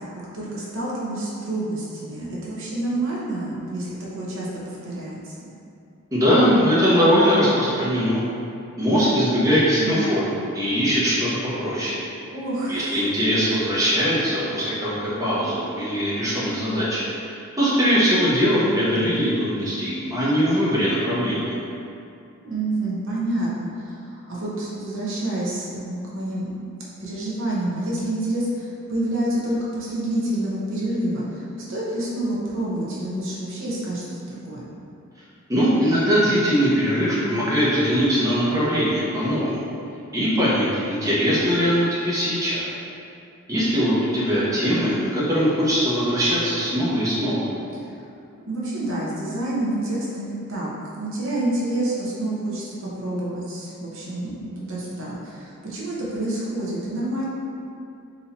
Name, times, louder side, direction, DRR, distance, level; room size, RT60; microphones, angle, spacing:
voice 1, 0.3-5.4 9.8-10.2 12.3-13.0 22.4-26.7 27.0-34.7 47.8-48.1 48.5-50.7 51.0-57.2, right 1 dB, 60° right, -7 dB, 0.8 m, -28 dB
voice 2, 6.1-8.2 8.8-10.2 10.5-12.0 12.7-21.6 35.5-39.6 40.1-42.7 43.5-47.4, equal, 15° right, -10 dB, 0.9 m, -21 dB
4.1 x 2.8 x 4.1 m, 2.6 s
head